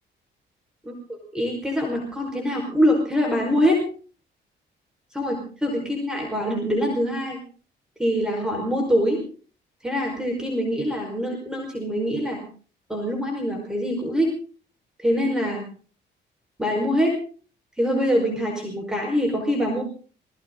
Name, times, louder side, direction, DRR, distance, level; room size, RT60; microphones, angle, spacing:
voice 1, 0.8-3.8 5.1-7.4 8.0-9.2 9.8-12.4 12.9-14.3 15.0-15.6 16.6-17.1 17.8-19.8, equal, 5° right, 0 dB, 5.1 m, -24 dB
21.0 x 16.5 x 3.9 m, 0.40 s
cardioid pair, 90°, 20 cm